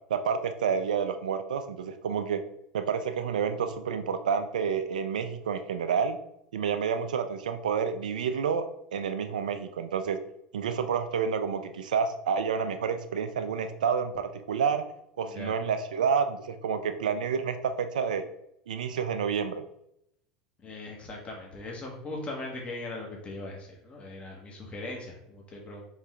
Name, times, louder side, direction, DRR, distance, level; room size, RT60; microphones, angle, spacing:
voice 1, 0.1-2.4 2.7-6.2 6.5-10.2 10.5-14.8 15.2-18.2 18.7-19.6, right 6 dB, 90° right, 9 dB, 0.3 m, -29 dB
voice 2, 15.2-15.6 20.6-25.8, left 2 dB, 30° left, -1 dB, 1.3 m, -39 dB
3.8 x 3.1 x 3.6 m, 0.78 s
hypercardioid pair, 90°, 4 cm